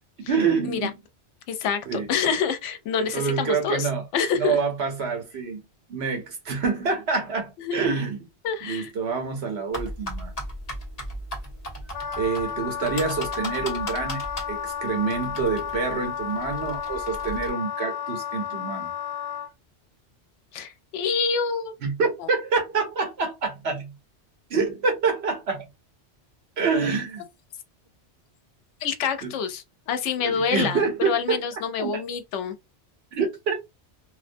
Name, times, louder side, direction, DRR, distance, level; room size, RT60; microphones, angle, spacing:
voice 1, 0.3-0.9 1.9-2.1 3.0-4.0 4.3-5.6 5.9-8.2 8.6-10.3 12.2-14.2 14.5-18.9 21.8-23.9 24.5-25.7 26.6-27.2 29.2-29.3 30.2-31.4 31.8-32.0 33.1-33.5, right 5 dB, 65° right, 1.1 m, -27 dB
voice 2, 1.5-4.6 7.6-7.8 8.4-8.9 20.5-21.7 22.2-22.3 28.8-32.5, left 6 dB, 90° left, 0.9 m, -27 dB
sound 1, 9.7-17.5, equal, 35° left, 0.9 m, -37 dB
Wind instrument woodwind instrument, 11.9-19.5, left 8 dB, 55° left, 0.5 m, -32 dB
2.5 x 2.2 x 2.6 m
omnidirectional pair, 1.2 m